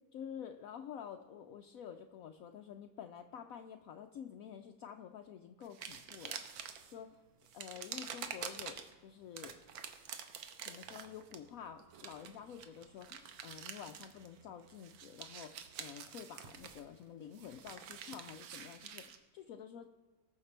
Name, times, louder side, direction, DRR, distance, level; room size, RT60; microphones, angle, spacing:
voice 1, 0.1-6.4 6.9-7.1 7.5-9.6 10.7-19.9, left 8 dB, 75° left, 6 dB, 0.8 m, -49 dB
sound 1, 5.6-6.9 7.4-8.9 9.4-14.4 14.7-19.2, right 8 dB, 85° right, 1.6 m, -48 dB
19.5 x 6.6 x 4.4 m, 1.3 s
omnidirectional pair, 2.1 m